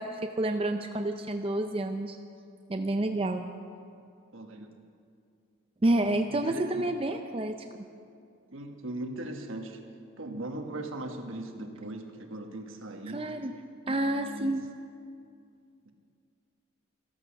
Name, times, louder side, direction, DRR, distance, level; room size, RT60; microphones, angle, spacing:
voice 1, 0.0-2.2 2.7-3.4 5.8-7.9 13.1-13.5 13.9-14.6, right 1 dB, 25° right, 5 dB, 0.5 m, -29 dB
voice 2, 4.3-4.7 6.0-6.9 8.5-9.8 10.2-13.3 14.0-14.6 15.8-15.9, right 1 dB, 70° right, 4 dB, 1.3 m, -39 dB
14.0 x 13.5 x 5.9 m, 2.4 s
head